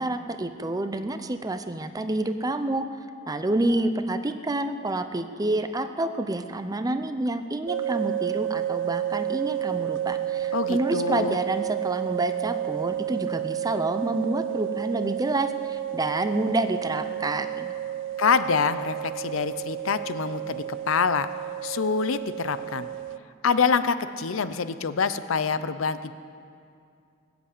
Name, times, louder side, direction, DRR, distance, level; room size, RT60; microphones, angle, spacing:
voice 1, 0.0-2.8 3.3-17.7, right 2 dB, 20° right, 9 dB, 0.6 m, -28 dB
sound 1, 7.7-23.2, right 11 dB, 65° right, 0.4 m, -31 dB
voice 2, 10.5-11.4 18.2-21.3 21.6-22.9 23.4-26.1, left 5 dB, 70° left, 13 dB, 0.6 m, -26 dB
19.5 x 8.1 x 8.4 m, 2.5 s
head